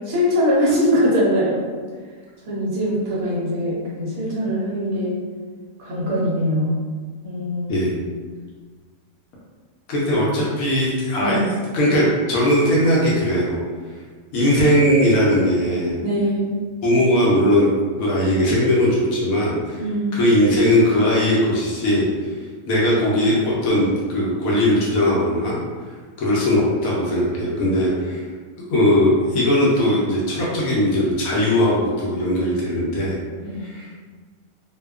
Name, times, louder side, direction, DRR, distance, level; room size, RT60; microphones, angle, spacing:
voice 1, 0.0-1.7 2.4-5.2 5.8-6.8 7.2-7.9 11.2-11.5 16.0-16.5 19.7-20.3 33.4-33.6, equal, 65° right, -6 dB, 0.9 m, -22 dB
voice 2, 9.9-11.4 11.7-13.6 14.3-15.9 16.8-17.7 18.0-19.8 20.1-22.1 22.7-25.5 26.2-28.2 28.7-33.2 33.6-33.9, left 1 dB, 70° left, -5 dB, 0.9 m, -19 dB
2.6 x 2.2 x 2.3 m, 1.5 s
omnidirectional pair, 1.8 m